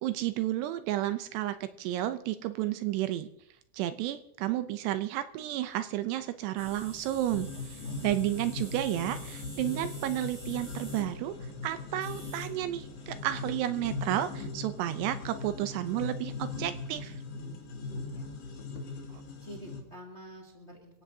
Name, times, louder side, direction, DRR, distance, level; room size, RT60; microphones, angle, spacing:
voice 1, 0.0-3.3 3.7-11.4 11.6-17.1, right 13 dB, 80° right, 10 dB, 2.7 m, -32 dB
sound 1, 6.6-13.2, equal, ahead, 3.5 m, -49 dB
sound 2, 7.3-19.8, left 3 dB, 75° left, 4.3 m, -40 dB
voice 2, 17.4-18.7 19.4-21.0, equal, 25° left, 0 dB, 1.6 m, -49 dB
28.5 x 16.0 x 2.8 m, 0.79 s
omnidirectional pair, 5.1 m